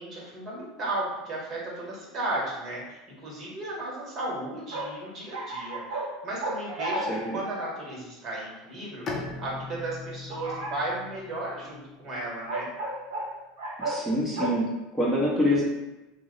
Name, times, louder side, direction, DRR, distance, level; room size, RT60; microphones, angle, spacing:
voice 1, 0.0-7.1 7.3-12.7, right 2 dB, 40° right, -4 dB, 1.2 m, -35 dB
sound 1, 4.7-6.1 6.4-7.9 10.3-10.9 12.5-13.3 13.6-14.0 14.4-14.5, right 2 dB, 75° right, 0.6 m, -33 dB
voice 2, 7.1-7.4 13.8-15.6, left 1 dB, ahead, -7 dB, 0.8 m, -26 dB
Bowed string instrument, 9.1-12.7, left 3 dB, 35° left, 0.6 m, -40 dB
2.7 x 2.0 x 3.8 m, 1.0 s
hypercardioid pair, 85°, 0 cm